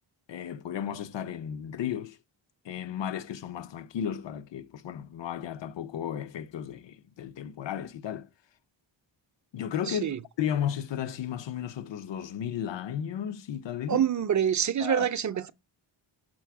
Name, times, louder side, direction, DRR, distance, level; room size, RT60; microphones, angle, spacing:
voice 1, 0.3-2.2 2.6-8.3 9.5-14.0 14.8-15.1, left 9 dB, 65° left, 0.7 m, -34 dB
voice 2, 9.9-10.2 13.9-15.5, right 9 dB, 40° right, 0.5 m, -26 dB
6.2 x 4.1 x 4.7 m
wide cardioid pair, 105°, 47 cm